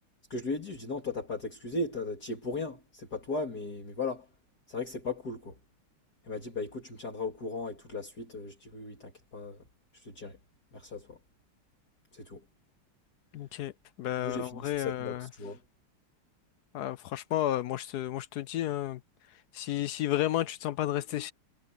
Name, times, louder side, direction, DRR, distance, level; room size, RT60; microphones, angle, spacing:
voice 1, 0.3-4.3 4.7-5.5 6.3-9.6 10.0-10.4 10.7-11.2 12.1-12.4 14.2-15.6, left 3 dB, 45° left, 3.2 m, -37 dB
voice 2, 13.3-13.7 14.0-15.3 16.7-19.0 19.5-21.3, left 13 dB, 80° left, 0.8 m, -32 dB
omnidirectional pair, 2.3 m